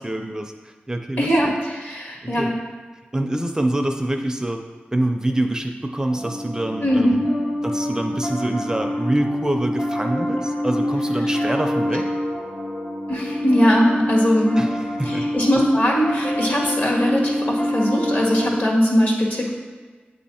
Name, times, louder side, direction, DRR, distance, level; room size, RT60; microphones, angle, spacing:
voice 1, 0.0-1.5 1.9-2.5 3.1-4.6 4.9-7.3 7.6-12.1 14.6-15.3, right 1 dB, 15° right, 4 dB, 0.4 m, -25 dB
voice 2, 1.2-2.5 6.8-7.3 13.1-14.7 15.1-19.5, equal, 55° left, -2 dB, 1.7 m, -20 dB
Piano, 6.1-18.5, left 1 dB, 80° left, 1.9 m, -26 dB
8.9 x 3.1 x 4.2 m, 1.4 s
wide cardioid pair, 80°, 4 cm